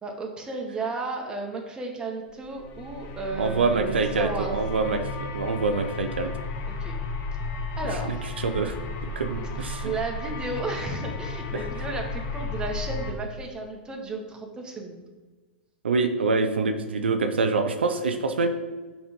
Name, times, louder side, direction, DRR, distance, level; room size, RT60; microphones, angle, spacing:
voice 1, 0.0-4.6 6.7-6.9 7.8-8.2 9.8-15.0, right 3 dB, 15° right, 0 dB, 1.4 m, -33 dB
sound 1, 2.4-13.1, left 3 dB, 35° left, 0.8 m, -34 dB
voice 2, 3.4-6.3 7.9-8.0 8.2-8.8 9.0-9.9 11.5-11.6 15.8-18.5, right 4 dB, 80° right, 6 dB, 0.6 m, -25 dB
5.9 x 4.2 x 5.2 m, 1.3 s
hypercardioid pair, 105°, 6 cm